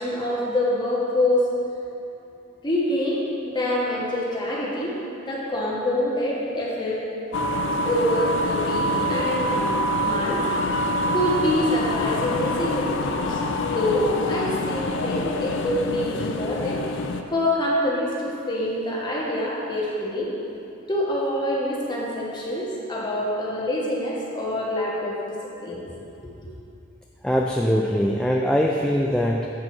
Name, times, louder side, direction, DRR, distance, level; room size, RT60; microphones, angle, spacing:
voice 1, 0.0-1.5 2.6-5.0 5.3-7.0 7.8-9.8 10.0-10.4 11.1-16.8 17.3-20.3 20.9-25.3 25.6-25.8 26.2-26.3, left 1 dB, 20° left, -6 dB, 1.5 m, -26 dB
sound 1, 7.3-17.2, left 1 dB, 60° left, 0.5 m, -26 dB
voice 2, 27.2-29.5, equal, 5° left, -1 dB, 0.3 m, -22 dB
8.2 x 4.7 x 6.0 m, 2.7 s
head